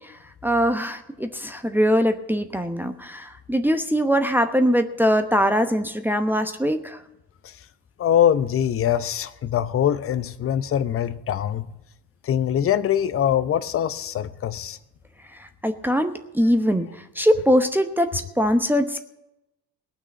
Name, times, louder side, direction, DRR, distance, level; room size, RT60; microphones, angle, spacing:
voice 1, 0.4-7.0 15.6-16.9 17.2-19.0, equal, 5° right, 6 dB, 0.9 m, -22 dB
voice 2, 8.0-11.7 12.2-14.8, left 10 dB, 25° left, 13 dB, 0.7 m, -23 dB
18.5 x 6.2 x 8.4 m, 0.90 s
figure-of-eight pair, 60°, 49 cm